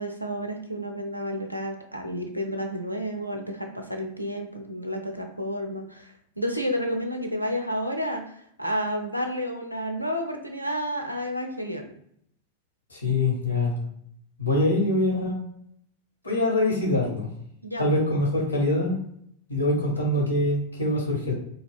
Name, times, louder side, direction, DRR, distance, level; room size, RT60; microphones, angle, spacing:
voice 1, 0.0-11.9 17.6-17.9, equal, 90° right, 3 dB, 0.4 m, -31 dB
voice 2, 12.9-13.7 14.4-15.4 16.2-17.3 17.8-19.0 19.5-21.3, left 1 dB, 80° left, -1 dB, 0.9 m, -24 dB
2.3 x 2.2 x 3.4 m, 0.70 s
figure-of-eight pair, 90°, 0 cm